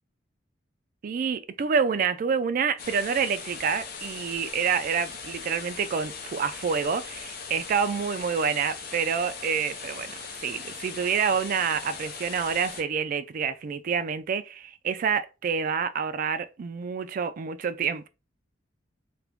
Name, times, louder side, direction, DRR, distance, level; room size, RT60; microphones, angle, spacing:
voice 1, 1.0-10.1 10.4-18.1, right 6 dB, 50° right, 0.3 m, -27 dB
sound 1, 2.8-12.8, left 5 dB, 55° left, 0.7 m, -39 dB
2.8 x 2.5 x 3.4 m
head